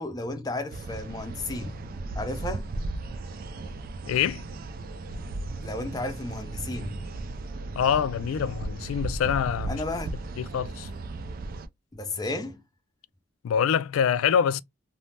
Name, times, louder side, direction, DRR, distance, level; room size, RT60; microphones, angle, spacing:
voice 1, 0.0-1.7 2.2-2.7 5.6-7.0 9.7-10.2 11.9-12.6, left 2 dB, 20° left, 0.5 m, -33 dB
sound 1, 0.7-11.7, right 2 dB, 45° right, 0.3 m, -36 dB
voice 2, 4.1-4.4 7.8-9.8 10.4-10.9 13.4-14.6, left 8 dB, 85° left, 0.3 m, -25 dB
2.6 x 2.0 x 3.2 m
head